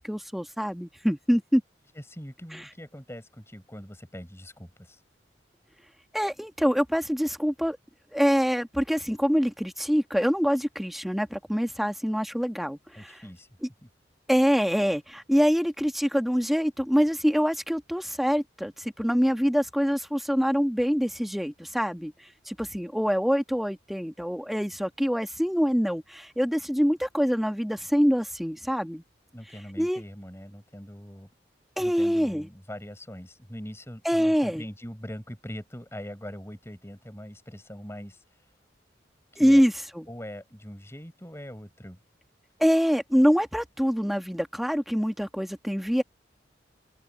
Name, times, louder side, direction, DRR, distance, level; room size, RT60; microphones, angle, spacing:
voice 1, 0.0-1.6 2.5-2.7 6.1-7.8 8.1-13.2 13.6-13.7 14.3-22.1 22.5-29.0 29.8-30.0 31.8-32.5 34.0-34.6 39.4-40.0 42.6-46.0, equal, ahead, 1.3 m, -25 dB
voice 2, 1.9-5.0 12.9-13.5 13.8-13.9 29.3-31.3 31.8-38.2 39.3-39.6 40.1-42.0, equal, 15° left, 6.1 m, -42 dB
head